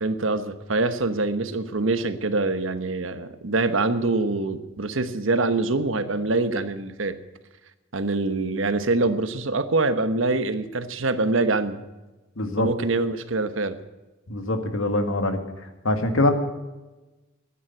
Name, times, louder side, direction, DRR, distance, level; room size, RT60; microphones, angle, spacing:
voice 1, 0.0-7.2 7.9-11.8 12.6-13.8, right 3 dB, 70° right, 11 dB, 1.1 m, -24 dB
voice 2, 12.4-12.7 14.3-15.4 15.8-16.3, left 2 dB, 85° left, 7 dB, 1.9 m, -23 dB
12.5 x 9.7 x 9.3 m, 1.1 s
head